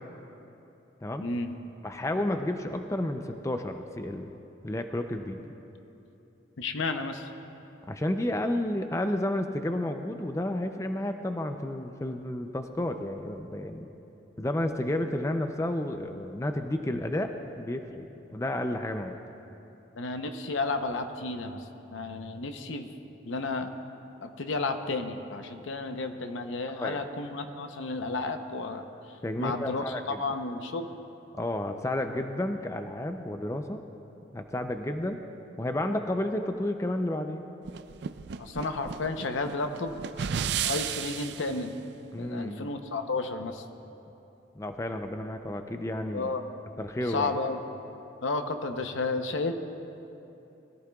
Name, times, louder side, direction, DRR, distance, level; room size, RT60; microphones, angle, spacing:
voice 1, 1.2-1.5 6.6-7.3 20.0-21.6 21.9-22.9 23.2-23.7 24.2-28.8 29.4-30.9 38.4-40.0 40.6-41.7 42.2-43.6 46.1-46.4 47.1-47.6 48.2-49.5, left 3 dB, 90° left, 7 dB, 0.8 m, -32 dB
voice 2, 1.8-4.3 4.6-5.5 7.9-13.9 14.4-19.2 26.8-27.1 29.2-30.2 31.4-33.8 34.3-35.2 35.6-37.4 42.1-42.7 44.6-46.3 46.8-47.3, left 1 dB, 15° left, 6 dB, 0.4 m, -31 dB
sound 1, 37.7-41.6, right 8 dB, 65° right, 0.4 m, -33 dB
21.5 x 14.0 x 2.3 m, 2.9 s
head